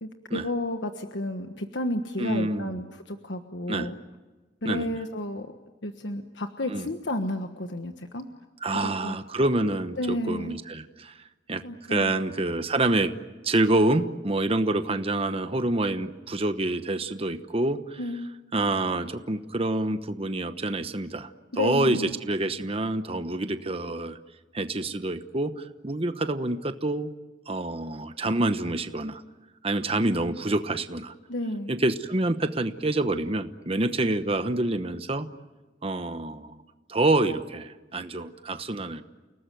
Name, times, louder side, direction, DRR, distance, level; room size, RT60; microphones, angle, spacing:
voice 1, 0.0-3.9 4.6-5.5 5.8-8.2 8.8-9.2 10.0-10.6 11.6-12.1 18.0-18.3 21.5-22.1 31.3-31.7, left 1 dB, 90° left, 6 dB, 1.4 m, -32 dB
voice 2, 2.2-2.8 3.7-3.9 4.6-5.0 6.7-6.9 8.6-11.2 11.5-13.1 13.4-18.0 18.5-24.2 24.5-27.1 27.5-29.2 29.6-31.1 31.7-35.3 35.8-36.6 36.9-39.0, right 2 dB, 35° right, 9 dB, 1.1 m, -27 dB
30.0 x 19.0 x 9.3 m, 1.2 s
head